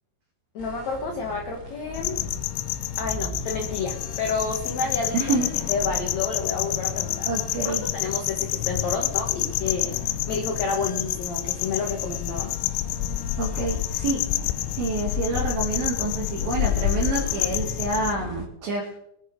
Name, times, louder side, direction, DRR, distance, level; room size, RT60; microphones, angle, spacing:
voice 1, 0.5-2.2 3.0-5.3 5.7-7.3 7.6-9.9 10.3-12.5, left 4 dB, 65° left, 2 dB, 1.8 m, -30 dB
sound 1, 0.6-18.5, left 1 dB, 30° left, 2.0 m, -40 dB
sound 2, 1.9-18.1, left 14 dB, 80° left, 2.7 m, -28 dB
voice 2, 5.1-5.5 7.3-7.8 13.4-14.3 14.8-18.9, right 3 dB, 60° right, -3 dB, 3.6 m, -27 dB
22.5 x 8.7 x 4.6 m, 0.77 s
omnidirectional pair, 5.2 m